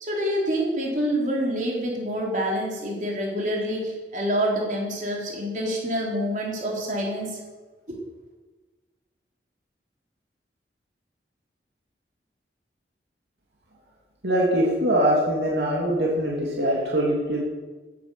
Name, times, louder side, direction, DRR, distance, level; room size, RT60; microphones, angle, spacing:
voice 1, 0.1-7.3 7.9-8.0, equal, 45° right, -2 dB, 4.1 m, -27 dB
voice 2, 14.2-17.4, right 1 dB, 75° right, -3 dB, 2.9 m, -23 dB
14.5 x 10.5 x 7.0 m, 1.3 s
head